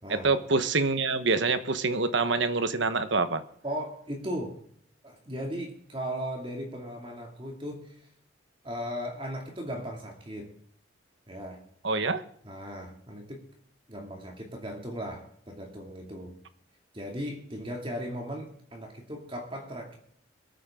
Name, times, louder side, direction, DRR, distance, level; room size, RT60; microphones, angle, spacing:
voice 1, 0.2-3.4 11.8-12.2, right 3 dB, 70° right, 11 dB, 1.2 m, -26 dB
voice 2, 3.6-4.6 5.0-8.1 8.6-10.5 11.3-11.6 12.4-13.4 13.9-16.3 16.9-20.0, equal, 25° right, 0 dB, 2.5 m, -37 dB
23.5 x 8.9 x 3.7 m, 0.65 s
head